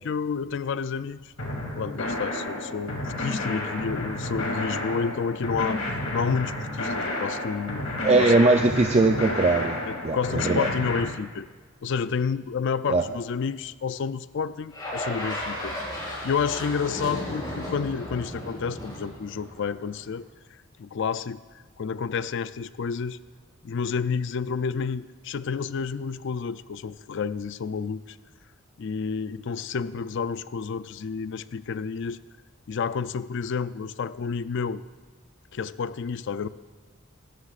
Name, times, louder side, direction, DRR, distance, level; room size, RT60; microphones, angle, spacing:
voice 1, 0.0-1.3 1.8-5.8 6.1-8.3 9.9-11.5 11.8-15.7 16.2-20.3 20.8-21.4 21.8-23.2 23.6-28.2 28.8-32.2 32.7-34.8 35.5-36.5, left 6 dB, 55° left, 15 dB, 0.4 m, -30 dB
sound 1, 1.4-11.0, left 1 dB, 85° left, 2.6 m, -31 dB
voice 2, 8.0-10.7 12.9-13.0, right 2 dB, 30° right, 3 dB, 0.5 m, -21 dB
sound 2, 14.7-20.0, left 1 dB, 20° left, 4.8 m, -34 dB
26.0 x 13.5 x 2.5 m, 1.5 s
head